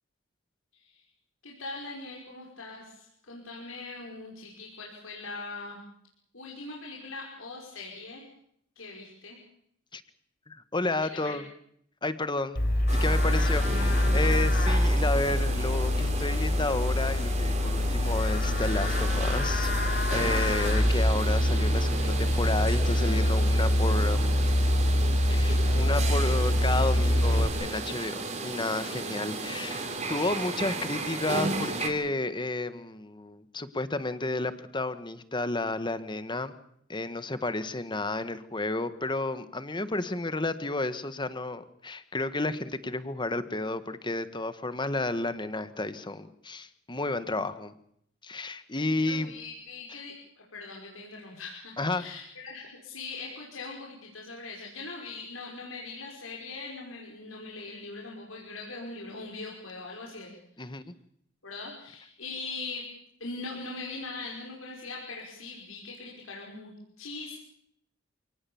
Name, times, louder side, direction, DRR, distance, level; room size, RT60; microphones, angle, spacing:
voice 1, 0.7-1.0 1.4-5.8 6.3-8.3 8.8-9.4 11.0-11.4 13.3-13.6 49.0-60.3 60.6-60.8 61.4-67.4, left 3 dB, 80° left, -2 dB, 5.6 m, -41 dB
voice 2, 10.5-11.4 12.0-12.6 13.0-19.7 20.1-24.5 25.3-28.1 28.4-36.6 36.9-47.7 48.2-49.3 51.8-52.0 60.6-60.9, left 2 dB, 25° left, 12 dB, 1.5 m, -31 dB
Livestock farm animals working animals, 12.6-27.5, left 1 dB, 50° left, 4.0 m, -25 dB
sound 1, 12.9-31.9, right 3 dB, 35° right, 3.8 m, -35 dB
28.0 x 19.0 x 7.2 m, 0.71 s
head